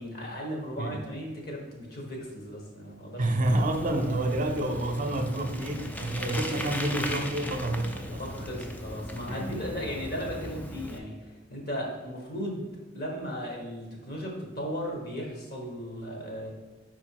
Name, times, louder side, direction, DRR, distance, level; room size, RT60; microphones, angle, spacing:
voice 1, 0.0-3.5 8.2-12.7 12.9-16.5, equal, 55° left, -1 dB, 1.4 m, -36 dB
voice 2, 3.2-8.4 9.3-9.5, right 1 dB, 45° right, 4 dB, 0.6 m, -29 dB
Bicycle, 3.4-11.0, left 1 dB, 10° left, 0.4 m, -38 dB
4.9 x 4.5 x 4.6 m, 1.2 s
head